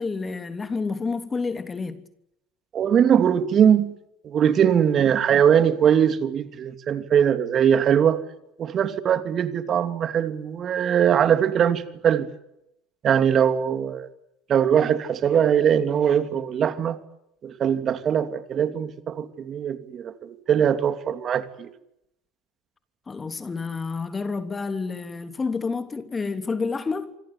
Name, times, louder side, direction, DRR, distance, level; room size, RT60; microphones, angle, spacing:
voice 1, 0.0-2.1 23.1-27.2, left 4 dB, 25° left, 3.1 m, -29 dB
voice 2, 2.7-3.9 4.2-8.2 8.6-12.3 13.0-14.1 14.5-17.0 17.4-21.7, right 8 dB, 45° right, 2.8 m, -21 dB
27.0 x 25.0 x 8.5 m
hypercardioid pair, 70°, 0 cm